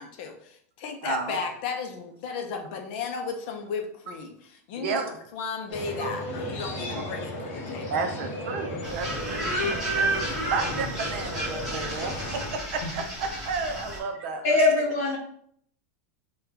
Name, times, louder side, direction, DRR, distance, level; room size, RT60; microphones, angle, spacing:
voice 1, 0.0-5.0 5.3-8.0, left 5 dB, 40° left, 4 dB, 0.5 m, -34 dB
voice 2, 1.0-1.4 4.7-5.1 6.0-6.1 7.9-14.7, right 4 dB, 50° right, 5 dB, 0.5 m, -32 dB
sound 1, 5.7-12.5, left 1 dB, 25° left, 0.9 m, -35 dB
sound 2, 8.8-14.0, right 1 dB, 5° right, 1.1 m, -31 dB
voice 3, 14.4-15.2, left 2 dB, 70° left, -3 dB, 0.7 m, -22 dB
2.9 x 2.2 x 3.7 m, 0.65 s
supercardioid pair, 180°, 8 cm